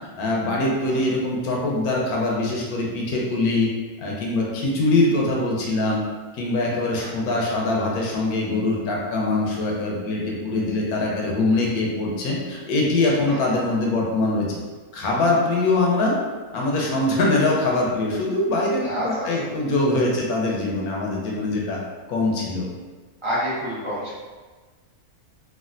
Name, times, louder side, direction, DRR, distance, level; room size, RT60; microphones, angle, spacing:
voice 1, 0.2-3.7 4.0-6.0 6.3-14.6 14.9-16.2 16.5-21.8 22.1-22.7, left 2 dB, 75° left, -2 dB, 1.1 m, -23 dB
voice 2, 18.8-19.3 23.2-24.1, equal, 30° right, -10 dB, 0.6 m, -28 dB
3.2 x 2.3 x 2.4 m, 1.3 s
omnidirectional pair, 1.6 m